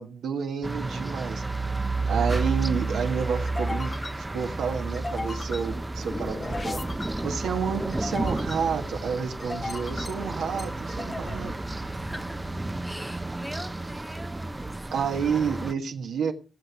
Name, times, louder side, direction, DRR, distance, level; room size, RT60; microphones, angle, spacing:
voice 1, 0.0-1.4 2.1-6.8 7.2-11.5 14.9-16.3, right 6 dB, 85° right, 1.4 m, -30 dB
sound 1, 0.6-15.7, right 3 dB, 20° right, 0.6 m, -32 dB
sound 2, 3.5-13.9, left 2 dB, 30° left, 0.8 m, -39 dB
voice 2, 11.9-12.5 12.8-14.8, equal, ahead, 1.3 m, -42 dB
16.0 x 6.9 x 4.5 m
cardioid pair, 65°, 0 cm